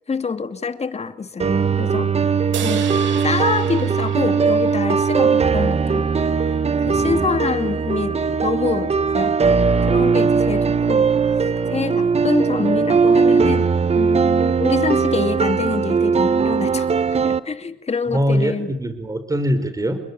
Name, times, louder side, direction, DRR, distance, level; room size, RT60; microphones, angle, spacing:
voice 1, 0.1-2.1 2.6-2.9 3.2-6.1 6.3-6.6 6.9-9.4 9.8-11.1 11.7-16.9 17.2-18.7, left 5 dB, 30° left, 9 dB, 2.7 m, -26 dB
sound 1, 1.4-17.4, right 5 dB, 30° right, 1.2 m, -19 dB
sound 2, 2.5-6.0, right 9 dB, 70° right, 3.0 m, -34 dB
voice 2, 6.8-7.3 18.1-20.0, equal, 15° right, 10 dB, 4.5 m, -22 dB
29.5 x 21.5 x 9.5 m, 0.76 s
cardioid pair, 90°, 20 cm